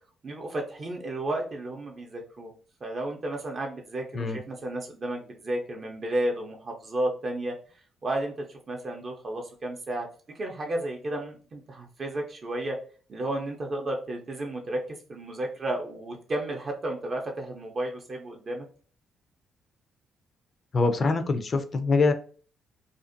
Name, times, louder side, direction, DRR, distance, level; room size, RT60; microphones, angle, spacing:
voice 1, 0.2-2.5 2.8-7.5 8.0-8.3 8.7-10.1 10.3-12.8 13.1-14.8 15.1-18.7, right 1 dB, 40° right, 1 dB, 0.5 m, -32 dB
voice 2, 20.7-22.1, left 3 dB, 40° left, 8 dB, 0.4 m, -24 dB
2.5 x 2.1 x 2.5 m, 0.41 s
cardioid pair, 90°, 0 cm